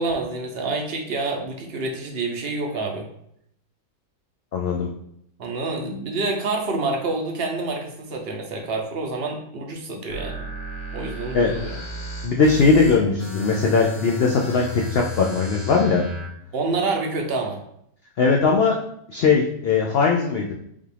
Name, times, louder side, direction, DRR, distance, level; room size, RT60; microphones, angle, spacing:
voice 1, 0.0-3.0 5.4-10.4 10.9-11.8 16.5-17.6, right 3 dB, 55° right, 2 dB, 0.7 m, -27 dB
voice 2, 4.5-4.9 11.3-11.5 12.2-14.6 14.9-16.0 18.2-18.8 19.1-20.5, left 4 dB, 80° left, 0 dB, 0.5 m, -19 dB
sound 1, 10.1-16.3, equal, 60° left, 1.7 m, -33 dB
5.4 x 2.4 x 3.3 m, 0.72 s
omnidirectional pair, 1.7 m